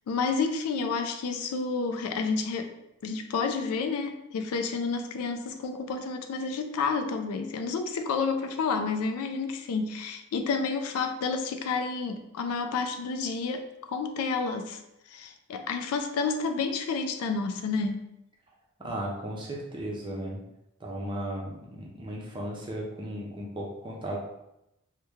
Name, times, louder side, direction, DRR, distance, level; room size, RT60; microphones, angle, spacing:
voice 1, 0.1-2.7 3.0-14.8 15.1-18.0, left 4 dB, 85° left, 7 dB, 0.3 m, -30 dB
voice 2, 18.8-20.4 20.8-24.2, right 1 dB, 20° right, -2 dB, 0.5 m, -35 dB
3.0 x 2.2 x 3.4 m, 0.86 s
head